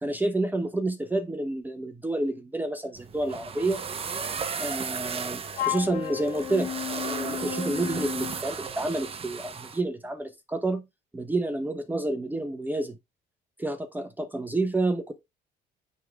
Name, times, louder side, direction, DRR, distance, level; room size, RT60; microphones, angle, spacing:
voice 1, 0.0-3.8 4.6-10.8 11.1-13.0 13.6-15.1, right 2 dB, 10° right, 0.9 m, -29 dB
sound 1, 3.0-9.8, right 6 dB, 35° right, 0.9 m, -35 dB
Wind instrument woodwind instrument, 5.5-8.4, left 12 dB, 85° left, 1.9 m, -33 dB
9.3 x 3.5 x 3.5 m
cardioid pair, 110°, 17 cm